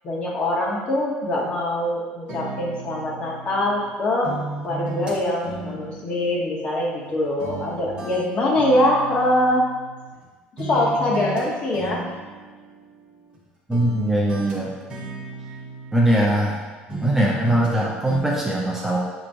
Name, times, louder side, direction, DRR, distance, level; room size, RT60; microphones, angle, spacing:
voice 1, 0.0-4.3 4.6-9.7 10.6-12.0, left 1 dB, 35° left, -4 dB, 1.0 m, -23 dB
sound 1, 2.3-3.9 4.2-7.1 7.4-10.3 10.6-11.4 11.7-13.4 13.7-16.6 16.9-17.8 18.1-18.2, right 2 dB, 30° right, 1.1 m, -36 dB
voice 2, 13.7-14.7 15.9-16.6 16.9-19.0, right 1 dB, 10° right, -4 dB, 0.6 m, -21 dB
6.6 x 2.9 x 2.6 m, 1.3 s
cardioid pair, 140°, 3 cm